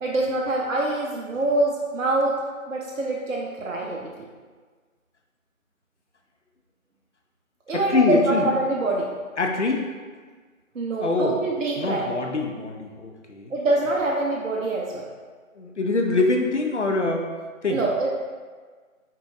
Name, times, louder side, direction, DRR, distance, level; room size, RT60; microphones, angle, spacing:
voice 1, 0.0-2.4 2.7-4.3 7.7-9.1 10.7-12.1 13.5-15.1 17.7-18.1, right 2 dB, 65° right, -2 dB, 0.7 m, -25 dB
voice 2, 7.7-8.5 9.4-9.8 11.0-11.4 11.8-13.5 15.6-17.3 17.6-17.8, left 3 dB, 55° left, 3 dB, 0.6 m, -24 dB
4.6 x 4.1 x 2.4 m, 1.5 s
figure-of-eight pair, 170°, 41 cm